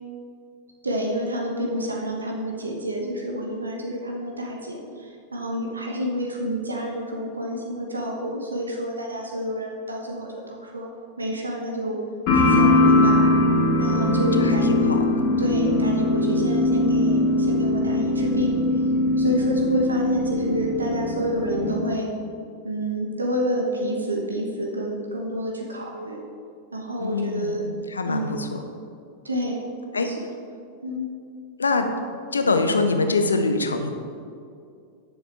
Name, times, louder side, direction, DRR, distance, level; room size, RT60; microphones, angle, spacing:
voice 1, 0.8-10.9 11.2-12.0 12.3-13.2 13.8-14.7 15.4-18.5 19.2-22.1 22.6-26.2 26.7-27.6 28.0-28.4 29.2-29.6 30.0-30.1 30.8-31.1, equal, 75° right, 0 dB, 1.1 m, -29 dB
sound 1, 12.3-21.8, left 2 dB, 45° left, 2.0 m, -21 dB
voice 2, 14.0-15.3 27.0-28.6 29.9-30.1 31.6-31.9 32.3-33.9, left 3 dB, 75° left, 6 dB, 0.8 m, -24 dB
10.5 x 6.8 x 4.4 m, 2.3 s
figure-of-eight pair, 90°, 0 cm